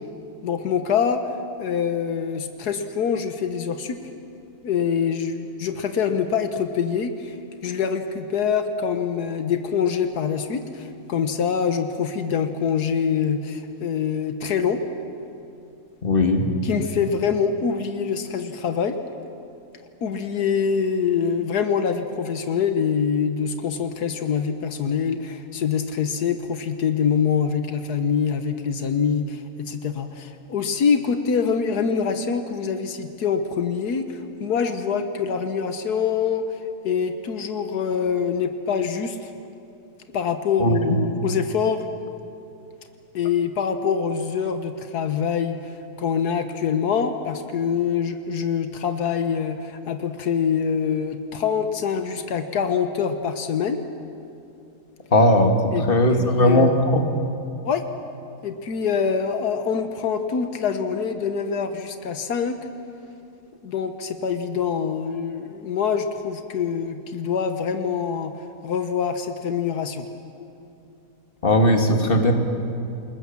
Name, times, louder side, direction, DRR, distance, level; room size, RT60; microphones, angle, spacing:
voice 1, 0.4-1.2 1.6-4.0 4.6-7.3 7.6-14.8 16.6-19.0 20.0-36.5 36.8-39.3 40.1-41.9 43.1-53.8 55.7-55.9 56.1-56.8 57.6-57.9 58.4-62.6 63.6-68.3 68.6-70.1, left 6 dB, 85° left, 8 dB, 1.6 m, -25 dB
voice 2, 16.0-16.5 40.6-40.7 55.1-55.5 55.9-57.0 71.4-72.3, left 1 dB, 35° left, 4 dB, 2.2 m, -17 dB
28.5 x 20.5 x 7.2 m, 2.7 s
omnidirectional pair, 1.7 m